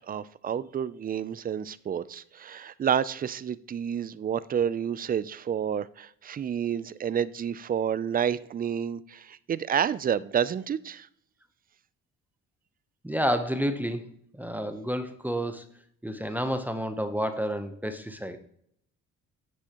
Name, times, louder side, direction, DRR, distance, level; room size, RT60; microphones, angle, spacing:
voice 1, 0.1-11.1, right 8 dB, 30° right, 0.4 m, -29 dB
voice 2, 13.0-14.1 14.3-15.6 16.0-18.4, equal, 5° right, 0.7 m, -30 dB
9.8 x 6.1 x 2.9 m
cardioid pair, 90°, 30 cm